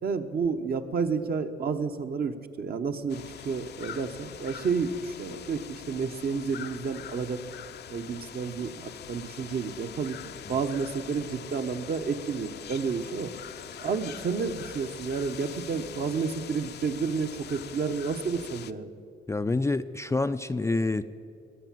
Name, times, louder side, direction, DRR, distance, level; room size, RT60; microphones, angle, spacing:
voice 1, 0.0-7.4 7.9-13.3 13.8-18.9, right 5 dB, 50° right, 7 dB, 1.1 m, -30 dB
sound 1, 3.1-18.7, left 9 dB, 60° left, 0.6 m, -43 dB
voice 2, 19.3-21.1, left 3 dB, 15° left, 9 dB, 0.4 m, -27 dB
21.0 x 8.5 x 7.6 m, 2.6 s
cardioid pair, 90°, 20 cm